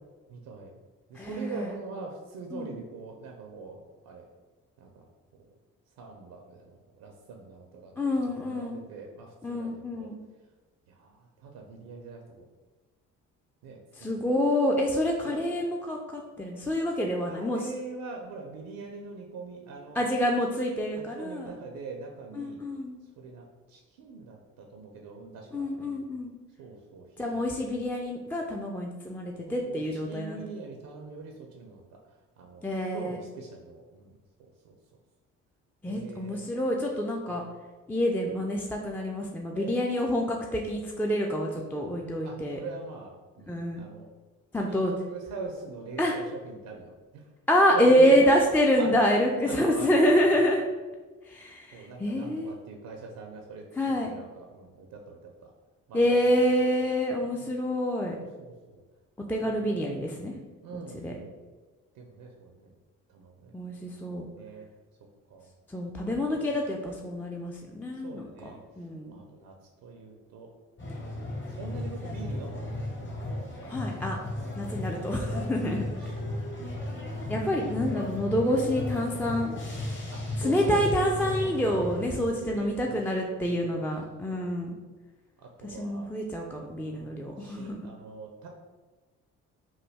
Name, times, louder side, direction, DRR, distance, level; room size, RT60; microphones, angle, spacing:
voice 1, 0.3-0.7 1.1-3.8 4.0-4.3 4.8-5.1 6.0-10.1 10.9-12.4 13.6-14.3 15.2-15.4 17.3-20.2 21.0-22.6 23.2-26.0 26.6-27.8 29.3-34.8 35.9-36.5 37.3-37.5 39.5-39.8 42.2-44.1 44.6-44.8 45.1-47.2 47.7-48.3 48.8-49.1 49.5-50.4 51.7-55.5 55.9-56.5 57.2-57.5 58.1-58.8 59.3-59.9 60.6-61.4 61.9-62.8 63.1-63.5 64.3-64.7 65.3-65.5 66.0-66.5 68.0-68.6 69.1-69.5 69.8-70.5 71.5-73.5 74.4-75.5 76.0-76.9 80.1-81.3 82.3-83.0 83.4-83.9 84.3-84.5 85.4-86.1 86.6-87.1 87.4-88.5, right 3 dB, 70° right, 1 dB, 0.5 m, -43 dB
voice 2, 1.1-1.7 2.5-2.7 8.0-8.8 9.4-10.2 13.9-17.6 20.0-21.5 22.4-22.9 25.5-26.3 27.2-30.4 32.6-33.2 35.8-37.4 37.9-42.6 43.5-43.9 44.5-44.9 46.0-46.2 47.5-50.6 51.2-52.5 53.8-54.1 55.9-58.2 59.3-60.3 60.7-61.1 63.5-64.3 65.7-69.2 73.6-74.2 74.6-75.8 77.3-79.5 80.4-84.8 85.6-87.9, equal, 5° left, 0 dB, 0.3 m, -27 dB
sound 1, 70.8-82.1, left 1 dB, 35° left, 0.9 m, -35 dB
3.1 x 2.2 x 3.3 m, 1.3 s
hypercardioid pair, 50°, 35 cm